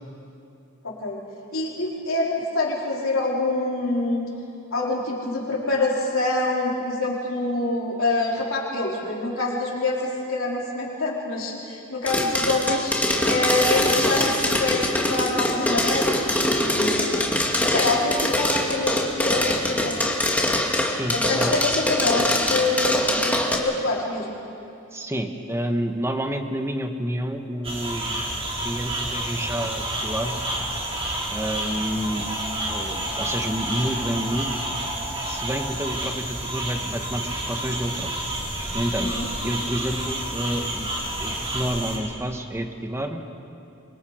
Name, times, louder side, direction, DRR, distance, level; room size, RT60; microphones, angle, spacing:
voice 1, 0.8-1.2 1.5-4.2 4.7-12.9 13.3-17.2 17.6-20.4 21.1-24.3 39.0-39.3, left 2 dB, 70° left, -3 dB, 4.2 m, -26 dB
sound 1, 12.1-23.6, left 1 dB, 5° left, 2.2 m, -23 dB
voice 2, 20.8-21.7 24.9-28.2 28.6-30.4 31.3-32.3 32.7-34.5 35.3-38.1 38.7-40.9 41.2-43.2, right 1 dB, 15° right, 5 dB, 1.3 m, -29 dB
sound 2, 27.6-42.0, right 1 dB, 30° right, 4.7 m, -29 dB
27.5 x 24.5 x 5.0 m, 2.7 s
head